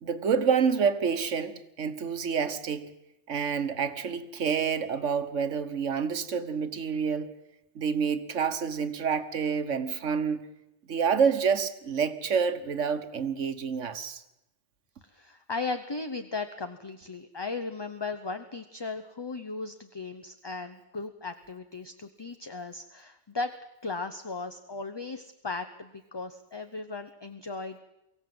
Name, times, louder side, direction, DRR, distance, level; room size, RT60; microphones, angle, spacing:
voice 1, 0.0-2.9 3.3-7.3 7.7-10.4 10.9-14.2, right 6 dB, 85° right, 1.5 m, -28 dB
voice 2, 15.0-23.5 23.8-27.8, left 3 dB, 25° left, 0.8 m, -36 dB
23.5 x 15.5 x 7.8 m
omnidirectional pair, 1.2 m